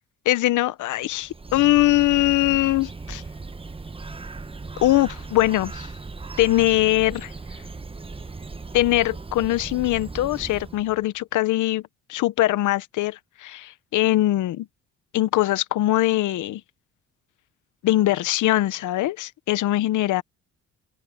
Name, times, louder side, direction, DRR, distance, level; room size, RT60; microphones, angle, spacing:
voice 1, 0.3-3.2 4.8-5.9 6.4-7.3 8.7-11.8 12.1-14.7 15.1-16.6 17.8-20.2, left 16 dB, 80° left, 0.9 m, -22 dB
Bird, 1.0-11.0, right 3 dB, 20° right, 1.1 m, -38 dB
cardioid pair, 90°, 30 cm